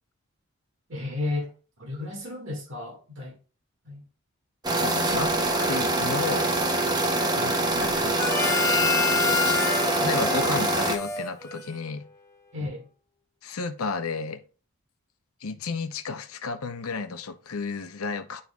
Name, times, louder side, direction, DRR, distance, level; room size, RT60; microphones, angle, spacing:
voice 1, 0.9-1.5 1.8-3.4 3.9-4.0 12.5-12.9, left 2 dB, 60° right, 1.9 m, -33 dB
sound 1, 4.6-11.0, right 2 dB, 20° right, 0.7 m, -24 dB
voice 2, 4.8-6.5 7.4-8.3 10.0-12.0 13.4-14.4 15.4-18.4, left 4 dB, 90° left, 0.7 m, -32 dB
Harmonica, 8.1-11.9, left 5 dB, 15° left, 0.9 m, -27 dB
11.0 x 3.9 x 2.3 m
head